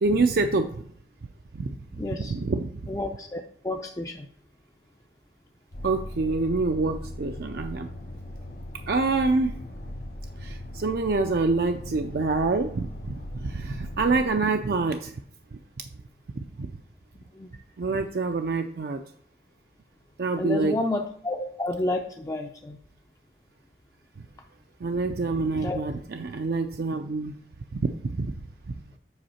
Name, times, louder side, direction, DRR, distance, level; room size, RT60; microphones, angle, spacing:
voice 1, 0.0-0.7 1.5-1.7 2.2-2.8 5.8-7.9 8.9-9.6 10.4-15.1 16.4-16.7 17.8-19.0 20.2-20.8 24.8-27.4 27.7-28.3, right 3 dB, 60° right, 6 dB, 0.4 m, -26 dB
voice 2, 2.0-2.3 2.9-4.3 17.4-17.5 20.4-22.8 25.5-25.8, left 2 dB, 20° left, 3 dB, 0.4 m, -30 dB
sound 1, 5.7-14.2, left 1 dB, 60° left, 1.3 m, -39 dB
7.9 x 5.5 x 4.3 m, 0.62 s
head